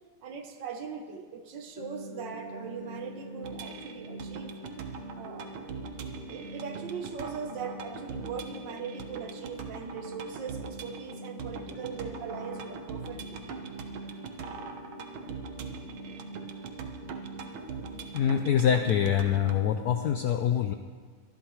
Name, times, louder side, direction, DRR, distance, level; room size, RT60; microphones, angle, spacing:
voice 1, 0.2-4.5 5.2-5.6 6.3-13.4, right 6 dB, 65° right, 6 dB, 1.6 m, -40 dB
sound 1, 1.7-20.2, right 1 dB, 35° left, 0.9 m, -44 dB
sound 2, 3.4-19.6, right 5 dB, 80° right, 1.7 m, -42 dB
voice 2, 18.1-20.7, left 9 dB, 75° left, 7 dB, 0.9 m, -25 dB
24.0 x 11.0 x 3.1 m, 1.5 s
omnidirectional pair, 2.2 m